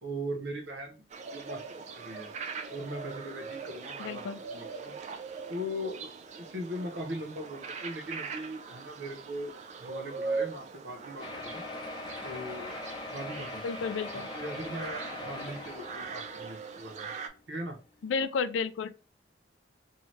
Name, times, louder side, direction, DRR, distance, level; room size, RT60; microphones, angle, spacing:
voice 1, 0.0-1.0 1.3-2.3 2.7-4.2 4.5-5.0 5.5-6.1 6.4-9.5 9.8-11.6 12.2-12.7 13.1-17.1 17.5-17.8, equal, 65° right, 0.8 m, -40 dB
sound 1, 1.1-17.3, right 4 dB, 40° right, 0.3 m, -41 dB
voice 2, 4.0-4.4 13.6-14.3 18.0-19.0, left 5 dB, 90° left, 0.3 m, -32 dB
sound 2, 11.2-16.6 17.3-17.4 17.7-17.8 18.1-18.2, left 2 dB, 25° left, 0.5 m, -41 dB
2.8 x 2.2 x 3.1 m
head